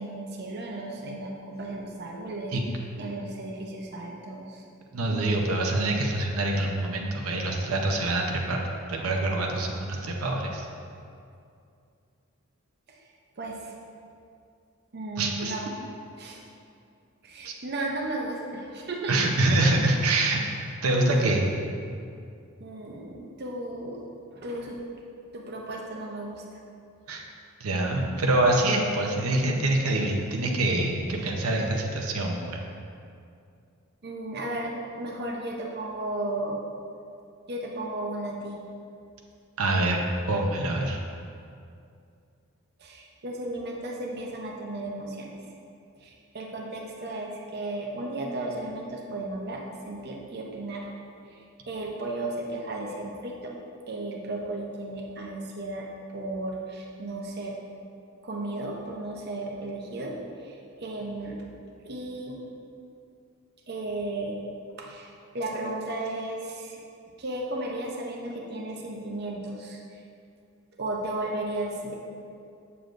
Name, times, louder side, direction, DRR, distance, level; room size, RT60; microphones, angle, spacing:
voice 1, 0.0-2.6 3.0-4.6 13.4-13.7 14.9-15.7 16.2-16.4 17.2-19.2 22.6-24.0 24.3-24.8 25.3-26.4 34.0-36.6 37.5-38.6 42.8-45.3 46.0-50.9 51.7-53.5 53.9-55.9 56.1-57.6 58.2-60.1 60.4-61.4 61.8-62.4 63.7-64.4 64.8-66.8 67.2-69.8 70.8-71.9, right 2 dB, 50° right, -1 dB, 0.7 m, -34 dB
voice 2, 4.9-10.7 15.2-15.5 17.4-17.5 19.1-20.4 20.8-21.5 27.1-27.2 27.6-32.6 39.6-40.0 40.3-41.0, right 2 dB, 85° right, 1 dB, 0.7 m, -25 dB
7.7 x 6.9 x 2.6 m, 2.4 s
head